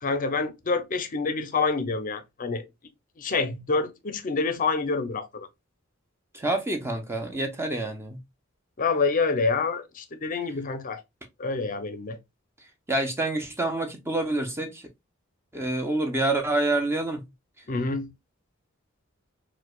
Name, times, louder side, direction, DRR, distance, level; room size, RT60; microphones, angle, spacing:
voice 1, 0.0-2.7 3.2-5.5 8.8-11.0 11.4-12.2 17.7-18.1, left 4 dB, 40° left, 0.5 m, -27 dB
voice 2, 6.3-8.2 12.9-14.8 15.5-17.2, right 2 dB, 10° right, 0.6 m, -27 dB
4.5 x 2.1 x 2.3 m
head